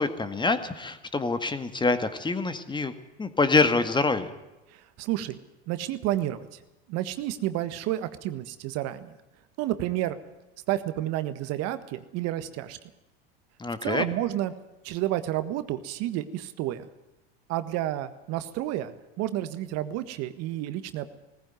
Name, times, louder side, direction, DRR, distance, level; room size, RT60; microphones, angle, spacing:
voice 1, 0.0-2.9 3.2-4.3 13.6-14.1, left 3 dB, 15° left, 11 dB, 1.9 m, -25 dB
voice 2, 4.7-5.4 5.7-6.5 6.9-9.1 9.6-10.2 10.7-12.8 13.8-14.5 14.8-16.9 17.5-21.1, right 14 dB, 55° right, 12 dB, 1.6 m, -30 dB
18.5 x 15.0 x 9.3 m, 1.0 s
hypercardioid pair, 100°, 30 cm